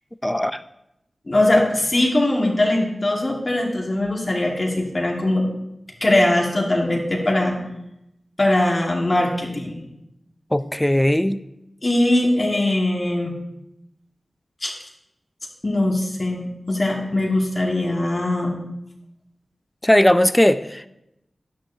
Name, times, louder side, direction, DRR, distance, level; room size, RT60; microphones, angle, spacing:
voice 1, 0.2-0.6 10.5-11.4 19.8-20.9, left 1 dB, 10° left, 13 dB, 0.5 m, -18 dB
voice 2, 1.3-5.4 6.0-7.6 8.4-9.8 11.8-13.4 14.6-14.7 15.6-18.6, left 1 dB, 45° left, -2 dB, 2.0 m, -21 dB
11.0 x 9.5 x 2.8 m, 0.87 s
cardioid pair, 45°, 0 cm